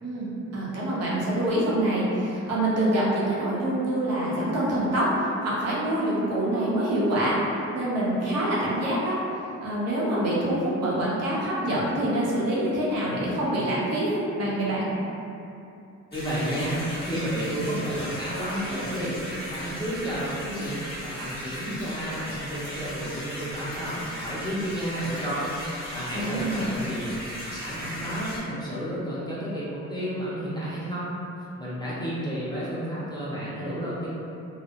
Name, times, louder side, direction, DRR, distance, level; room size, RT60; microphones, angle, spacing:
voice 1, 0.0-7.4 7.7-9.2 9.6-14.9 26.1-26.6, right 1 dB, 55° right, -7 dB, 0.7 m, -26 dB
sound 1, 16.1-28.4, equal, 30° left, 1.2 m, -37 dB
voice 2, 16.1-19.2 19.5-25.6 25.9-27.1 27.5-31.2 31.6-34.1, equal, 15° left, -9 dB, 0.6 m, -31 dB
2.6 x 2.0 x 2.5 m, 2.7 s
cardioid pair, 90°, 30 cm